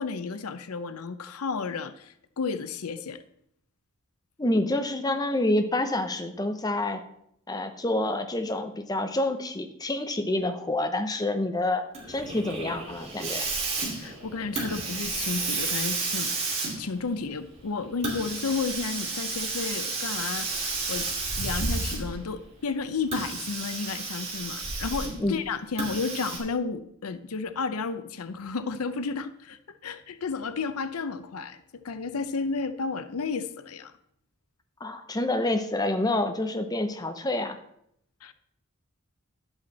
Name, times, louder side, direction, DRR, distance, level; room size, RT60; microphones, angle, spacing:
voice 1, 0.0-3.2 14.0-16.3 16.8-20.5 20.9-21.1 21.4-33.9 38.2-38.3, left 4 dB, 90° left, 12 dB, 0.6 m, -32 dB
voice 2, 4.4-7.0 7.5-13.5 25.2-25.3 34.8-37.6, left 1 dB, 15° left, 7 dB, 0.7 m, -28 dB
Hiss, 11.9-22.3 23.0-25.3 25.8-26.4, right 3 dB, 30° right, 2.7 m, -32 dB
11.0 x 8.0 x 4.1 m, 0.72 s
head